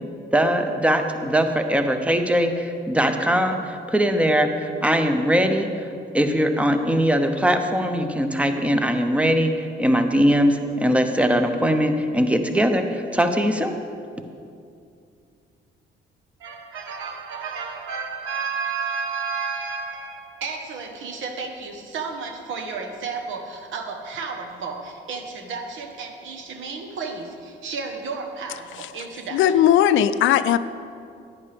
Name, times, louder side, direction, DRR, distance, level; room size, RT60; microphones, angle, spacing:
voice 1, 0.3-5.9 6.1-13.8, equal, 5° right, 6 dB, 0.8 m, -21 dB
voice 2, 16.4-29.4, right 5 dB, 80° right, 3 dB, 1.2 m, -32 dB
voice 3, 29.3-30.6, left 10 dB, 75° left, 13 dB, 0.4 m, -18 dB
10.5 x 9.9 x 3.4 m, 2.5 s
cardioid pair, 90°, 20 cm